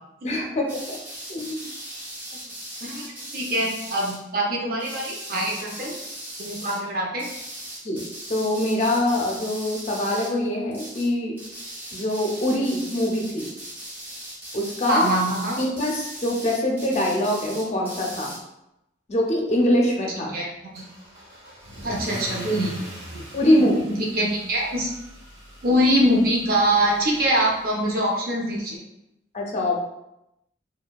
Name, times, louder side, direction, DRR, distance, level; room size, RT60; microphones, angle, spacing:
voice 1, 0.2-0.7 1.3-1.7 7.8-8.0 8.3-11.4 11.9-13.5 14.5-15.1 15.6-18.3 19.1-20.3 23.3-23.9 29.3-29.8, left 1 dB, 40° left, -1 dB, 0.5 m, -23 dB
sound 1, 0.7-4.2 4.8-6.8 7.2-10.4 10.7-11.1 11.4-18.4, right 1 dB, 10° right, 0.5 m, -39 dB
voice 2, 2.8-5.9 6.4-7.2 14.9-15.6 20.3-20.5 20.7-20.8 21.8-22.8 23.1-23.2 23.7-24.9 25.6-28.8, equal, 55° right, -2 dB, 0.6 m, -23 dB
Car / Engine starting / Accelerating revving vroom, 20.7-27.9, equal, 80° right, 1.1 m, -41 dB
2.7 x 2.1 x 2.2 m, 0.86 s
head